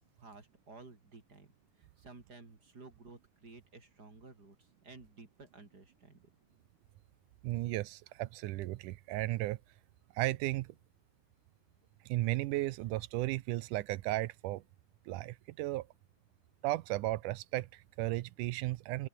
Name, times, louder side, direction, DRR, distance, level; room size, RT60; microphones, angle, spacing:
voice 1, 0.2-1.5 1.8-6.3, right 3 dB, 30° right, 4.3 m, -54 dB
voice 2, 7.4-9.6 10.2-10.8 12.1-14.6 15.1-15.9 16.6-19.1, right 17 dB, 85° right, 2.2 m, -35 dB
omnidirectional pair, 3.6 m